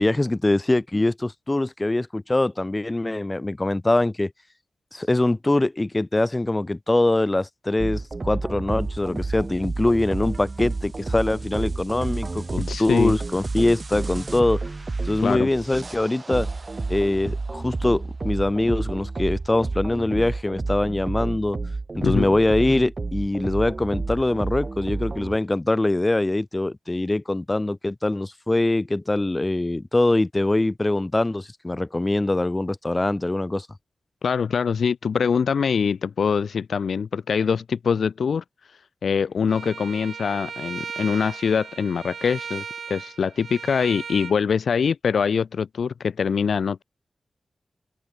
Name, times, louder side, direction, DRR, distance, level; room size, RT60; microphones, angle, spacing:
voice 1, 0.0-4.3 4.9-14.6 15.0-16.5 16.9-21.6 21.9-33.7, left 2 dB, 20° left, 2.4 m, -23 dB
sound 1, 7.8-25.4, right 3 dB, 40° right, 2.6 m, -30 dB
voice 2, 12.7-13.1 15.2-15.5 22.0-22.3 34.2-38.4 39.0-46.8, left 6 dB, 90° left, 0.5 m, -23 dB
Bowed string instrument, 39.5-44.4, right 6 dB, 85° right, 3.9 m, -37 dB
wide cardioid pair, 105°, 0 cm